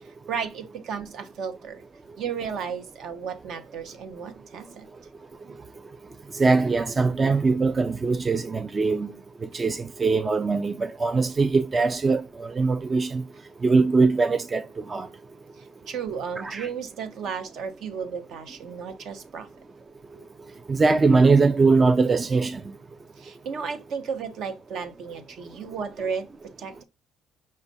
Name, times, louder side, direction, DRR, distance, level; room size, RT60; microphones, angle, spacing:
voice 1, 0.0-1.8 2.2-4.9 5.4-5.5 15.6-19.5 20.1-20.3 23.2-26.8, right 6 dB, 65° right, 0.9 m, -34 dB
voice 2, 6.3-9.1 9.5-13.2 13.6-14.6 14.9-15.1 16.4-16.7 20.7-22.6, right 4 dB, 25° right, 0.4 m, -21 dB
5.4 x 2.4 x 4.0 m
cardioid pair, 105°, 0 cm